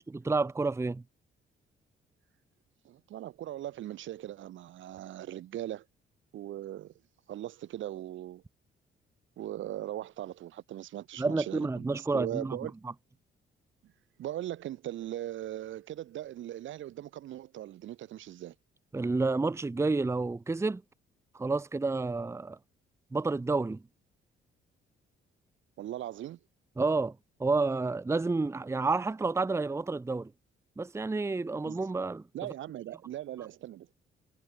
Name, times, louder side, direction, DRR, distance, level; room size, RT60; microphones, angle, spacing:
voice 1, 0.1-1.0 11.2-12.6 18.9-20.8 21.3-22.6 23.1-23.8 26.8-30.3 30.8-32.2, right 3 dB, 15° right, 0.7 m, -30 dB
voice 2, 2.8-5.8 6.3-6.9 7.3-8.4 9.4-12.7 13.8-13.9 14.2-18.5 25.8-26.4 31.6-31.9 32.3-33.9, right 13 dB, 75° right, 1.5 m, -39 dB
cardioid pair, 90°, 20 cm